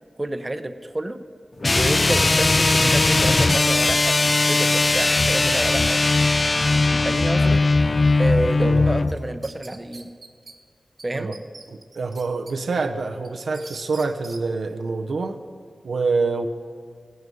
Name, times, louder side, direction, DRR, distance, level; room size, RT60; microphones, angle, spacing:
voice 1, 0.2-1.2 1.7-4.2 4.5-6.0 6.9-7.6 8.2-10.1 11.0-11.3, right 1 dB, 30° right, 9 dB, 0.7 m, -29 dB
sound 1, 1.6-9.2, left 3 dB, 45° left, 0.4 m, -19 dB
sound 2, 9.1-10.5 11.0-11.1 11.3-12.5 12.9-14.4, right 3 dB, 60° right, 1.3 m, -43 dB
voice 2, 11.7-15.4 15.8-16.5, right 4 dB, 90° right, 5 dB, 0.7 m, -26 dB
16.0 x 9.5 x 5.4 m, 2.1 s
cardioid pair, 50°, 0 cm